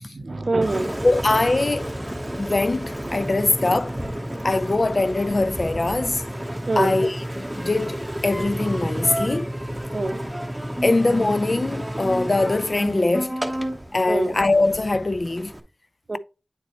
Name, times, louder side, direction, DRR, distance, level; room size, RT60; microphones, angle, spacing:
voice 1, 0.0-0.9 6.7-6.9 9.8-10.2 14.1-14.4 16.1-16.2, right 2 dB, 70° right, 0.5 m, -25 dB
Engine, 0.6-15.6, equal, 10° right, 1.1 m, -30 dB
voice 2, 1.0-1.9 2.4-3.9 4.4-6.2 6.8-8.0 8.2-9.5 10.8-13.3 13.9-15.5, left 2 dB, 55° left, 0.4 m, -22 dB
9.4 x 4.0 x 3.0 m
wide cardioid pair, 45°, 0 cm